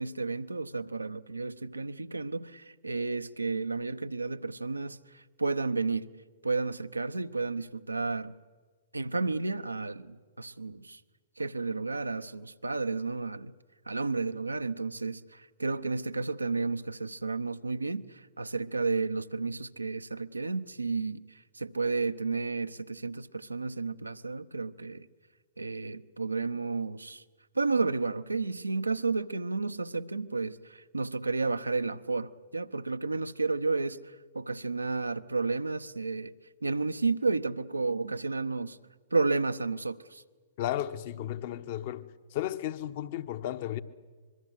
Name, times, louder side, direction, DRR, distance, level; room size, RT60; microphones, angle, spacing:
voice 1, 0.0-6.1 6.4-8.3 8.9-11.0 11.4-13.5 13.9-18.0 18.4-21.2 21.5-25.1 25.6-27.2 27.5-34.0 34.3-36.3 36.6-38.8 39.1-40.2, right 3 dB, 90° right, 0.9 m, -32 dB
voice 2, 40.6-42.0 42.3-43.8, left 12 dB, 45° left, 1.1 m, -34 dB
25.0 x 22.5 x 8.1 m
figure-of-eight pair, 115°, 0 cm